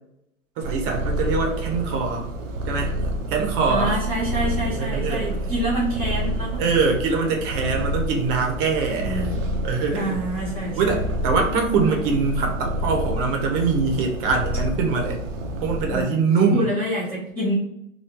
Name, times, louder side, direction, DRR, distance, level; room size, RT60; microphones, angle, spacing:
voice 1, 0.6-2.3 2.7-3.0 3.3-4.0 4.8-5.3 6.6-9.3 9.6-10.2 10.8-15.2 15.6-16.7, right 4 dB, 40° right, 2 dB, 0.9 m, -23 dB
Purr, 0.6-16.0, right 1 dB, 65° right, 0.7 m, -28 dB
voice 2, 3.7-6.9 9.0-9.6 9.9-11.0 15.9-17.5, right 1 dB, 5° left, -12 dB, 0.3 m, -27 dB
3.0 x 2.2 x 3.5 m, 0.81 s
hypercardioid pair, 130°, 41 cm